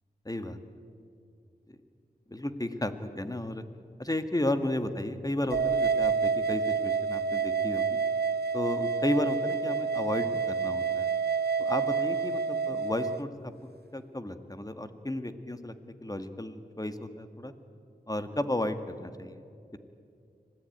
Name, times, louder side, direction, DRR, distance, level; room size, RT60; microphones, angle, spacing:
voice 1, 0.2-0.6 1.7-1.8 2.3-3.6 4.0-8.0 8.5-11.1 11.6-15.7 16.0-17.5 18.1-19.4, left 1 dB, 20° left, 9 dB, 1.7 m, -33 dB
sound 1, 5.5-13.2, right 5 dB, 70° right, 0.7 m, -28 dB
25.5 x 17.5 x 9.3 m, 2.4 s
wide cardioid pair, 45°, 17 cm